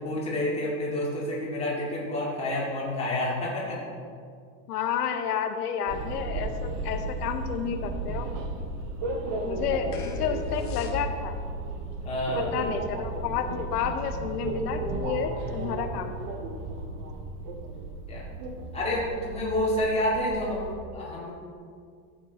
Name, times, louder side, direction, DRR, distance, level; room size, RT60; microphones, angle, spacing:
voice 1, 0.0-3.8 12.0-12.5 18.1-18.3 18.7-21.3, left 1 dB, 15° left, -6 dB, 2.2 m, -29 dB
voice 2, 4.7-8.3 9.4-11.4 12.3-16.1, left 7 dB, 85° left, 6 dB, 1.0 m, -30 dB
sound 1, 5.9-20.7, right 2 dB, 20° right, 0.4 m, -34 dB
sound 2, 9.9-11.5, left 2 dB, 30° left, 1.0 m, -34 dB
13.0 x 7.5 x 4.1 m, 2.2 s
supercardioid pair, 160°, 45 cm